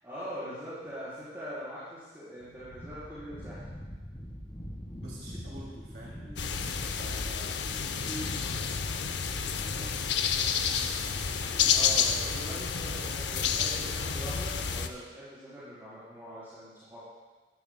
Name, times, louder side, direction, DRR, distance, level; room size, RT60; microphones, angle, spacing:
voice 1, 0.0-3.6 11.7-17.0, equal, 15° right, -14 dB, 4.0 m, -42 dB
Wind, 2.4-7.2, equal, 20° left, 1.5 m, -43 dB
voice 2, 5.0-6.5 6.9-9.1 9.5-10.0 10.5-11.8, right 1 dB, 65° right, -5 dB, 2.4 m, -46 dB
sound 1, 6.4-14.9, left 6 dB, 75° left, 0.7 m, -30 dB
15.5 x 13.0 x 2.2 m, 1.3 s
head